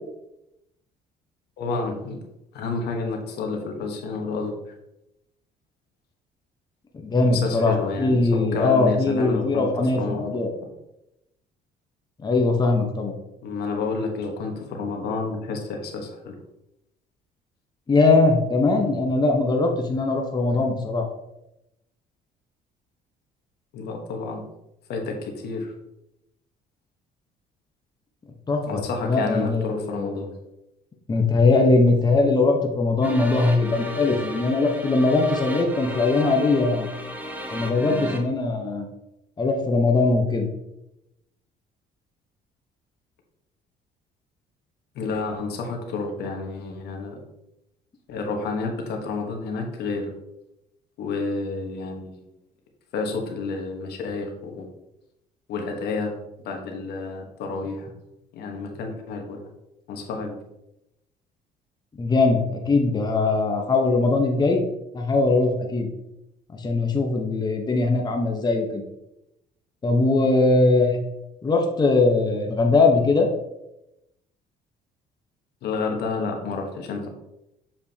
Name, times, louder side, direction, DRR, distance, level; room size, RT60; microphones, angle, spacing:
voice 1, 1.6-2.2 2.5-4.5 7.3-10.3 13.4-16.4 20.5-20.6 23.7-24.4 24.9-25.7 28.7-30.3 44.9-47.2 48.1-50.1 51.0-52.2 52.9-54.7 55.5-56.1 56.4-57.9 58.3-59.4 59.9-60.4 75.6-77.1, left 4 dB, 75° left, 2 dB, 1.2 m, -30 dB
voice 2, 6.9-7.7 8.0-10.5 12.2-13.1 17.9-21.0 28.5-30.2 31.1-36.9 37.5-38.8 39.4-40.5 62.0-64.6 64.9-65.9 66.5-68.8 69.8-71.0 71.4-73.3, left 3 dB, 25° left, 2 dB, 0.9 m, -21 dB
sound 1, 33.0-38.2, equal, 10° right, 1.0 m, -34 dB
7.1 x 4.9 x 2.8 m, 0.88 s
cardioid pair, 110°, 17 cm